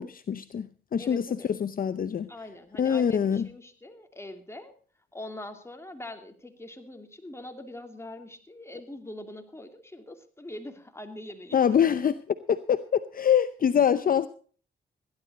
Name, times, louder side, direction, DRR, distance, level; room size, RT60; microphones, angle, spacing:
voice 1, 0.0-2.3 2.8-3.5 11.5-14.3, left 8 dB, 50° left, 0.7 m, -25 dB
voice 2, 1.0-1.5 2.3-4.7 5.1-11.6, left 1 dB, 15° left, 2.7 m, -43 dB
16.5 x 11.5 x 4.2 m
cardioid pair, 70°, 19 cm